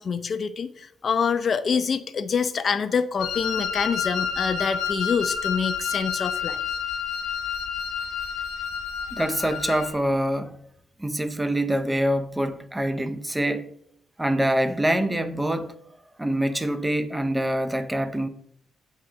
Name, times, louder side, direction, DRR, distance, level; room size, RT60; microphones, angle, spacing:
voice 1, 0.0-6.6, left 6 dB, 45° left, 0.5 m, -26 dB
Wind instrument woodwind instrument, 3.2-9.9, left 7 dB, 85° left, 1.1 m, -29 dB
voice 2, 9.1-10.6 11.0-13.7 14.2-15.7 16.2-18.3, right 1 dB, 10° right, 0.6 m, -25 dB
7.4 x 3.7 x 4.7 m
cardioid pair, 90°, 0 cm